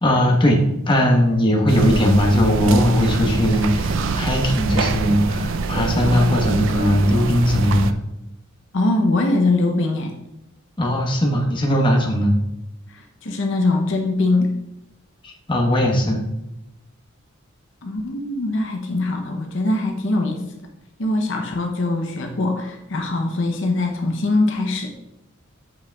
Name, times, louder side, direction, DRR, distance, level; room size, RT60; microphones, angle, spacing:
voice 1, 0.0-7.9 10.8-12.3 15.2-16.2, equal, 25° left, 0 dB, 1.0 m, -19 dB
sound 1, 1.7-7.9, right 4 dB, 65° right, 0.4 m, -25 dB
voice 2, 6.0-6.4 8.7-10.1 12.9-14.5 17.8-20.5 21.0-24.9, left 2 dB, 60° left, 2 dB, 0.7 m, -22 dB
7.4 x 5.7 x 2.3 m, 0.90 s
head